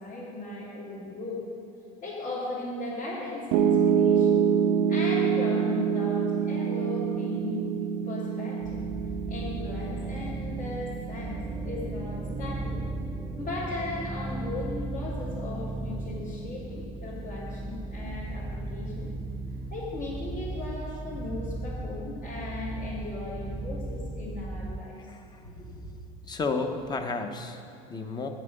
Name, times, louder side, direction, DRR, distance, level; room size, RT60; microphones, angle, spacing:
voice 1, 0.0-1.4 2.0-4.4 4.9-7.6 8.0-8.8 9.3-12.8 13.4-19.1 19.7-24.9 25.4-25.7, left 2 dB, 55° left, -10 dB, 2.8 m, -37 dB
Piano, 3.5-15.7, right 7 dB, 80° right, 0.6 m, -27 dB
sound 1, 8.6-24.8, right 2 dB, 15° right, 0.5 m, -36 dB
voice 2, 24.9-25.5 26.3-28.3, left 3 dB, 20° left, 6 dB, 0.8 m, -33 dB
8.2 x 7.4 x 7.8 m, 2.7 s
cardioid pair, 130°, 18 cm